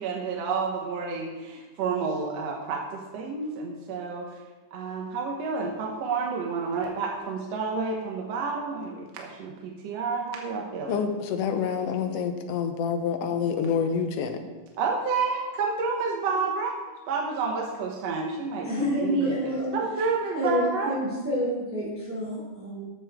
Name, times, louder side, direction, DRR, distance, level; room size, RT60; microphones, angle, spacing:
voice 1, 0.0-4.4 4.7-11.0 14.8-16.8 17.1-20.9, right 4 dB, 65° right, 1 dB, 2.1 m, -30 dB
voice 2, 10.9-14.4, left 6 dB, 70° left, 7 dB, 1.6 m, -27 dB
voice 3, 18.6-19.8 20.3-22.9, equal, 5° right, -8 dB, 2.3 m, -28 dB
13.0 x 8.8 x 3.6 m, 1.2 s
omnidirectional pair, 3.5 m